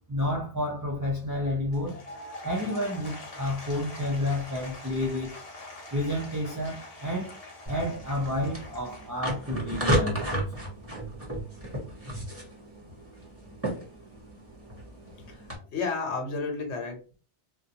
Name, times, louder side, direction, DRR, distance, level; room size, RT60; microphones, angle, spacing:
voice 1, 0.1-2.0 2.4-5.3 5.9-7.4 7.7-10.7, left 1 dB, 30° right, 0.3 m, -30 dB
Applause / Crowd, 1.6-9.9, left 2 dB, 40° left, 0.7 m, -44 dB
sound 1, 7.7-15.6, right 1 dB, 15° right, 0.8 m, -33 dB
voice 2, 15.1-17.0, left 4 dB, 80° left, 1.0 m, -32 dB
2.5 x 2.2 x 2.7 m
omnidirectional pair, 1.1 m